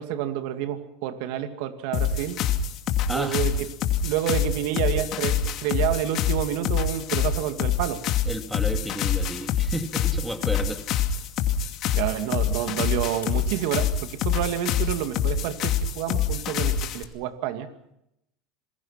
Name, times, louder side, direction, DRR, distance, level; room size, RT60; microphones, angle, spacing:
voice 1, 0.0-2.4 3.1-3.7 4.0-8.0 12.0-17.7, right 11 dB, 70° right, 7 dB, 2.4 m, -29 dB
sound 1, 1.9-17.0, left 7 dB, 50° left, 2.5 m, -26 dB
voice 2, 3.1-3.4 8.2-10.8, equal, 5° right, 5 dB, 2.4 m, -32 dB
sound 2, 13.2-13.4 14.4-14.5 14.6-15.0 15.6-15.7, left 14 dB, 90° left, 5.3 m, -43 dB
27.5 x 21.5 x 5.9 m, 0.81 s
supercardioid pair, 130°, 0 cm